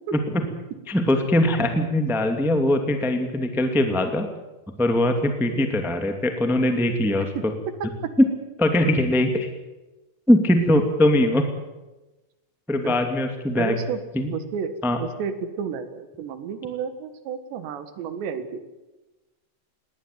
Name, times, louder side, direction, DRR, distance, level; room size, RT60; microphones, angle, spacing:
voice 1, 0.1-0.4 0.9-4.3 4.8-7.5 8.2-8.3 8.6-9.5 10.3-11.4 12.7-13.8 14.1-14.3 14.8-15.0, left 1 dB, ahead, 5 dB, 1.0 m, -21 dB
voice 2, 5.5-5.9 12.8-13.0 13.6-14.0 14.3-18.6, right 6 dB, 80° right, 10 dB, 3.9 m, -32 dB
21.0 x 18.0 x 9.3 m, 1.1 s
omnidirectional pair, 5.0 m